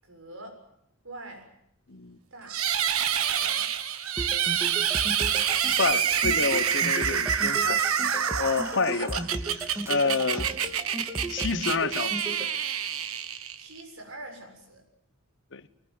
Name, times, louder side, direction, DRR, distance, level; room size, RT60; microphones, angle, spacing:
voice 1, 0.0-0.6 1.0-1.5 2.3-2.6 3.3-3.7 10.0-10.5 13.5-14.8, right 2 dB, 65° right, 7.1 m, -44 dB
voice 2, 1.9-2.2 5.8-7.8 8.4-9.3 9.6-10.5 11.3-12.5 15.5-15.6, left 4 dB, 60° left, 1.2 m, -28 dB
sound 1, 2.5-13.8, right 8 dB, 85° right, 1.5 m, -27 dB
sound 2, 4.2-12.4, right 1 dB, 10° right, 2.4 m, -35 dB
24.0 x 20.5 x 9.6 m
head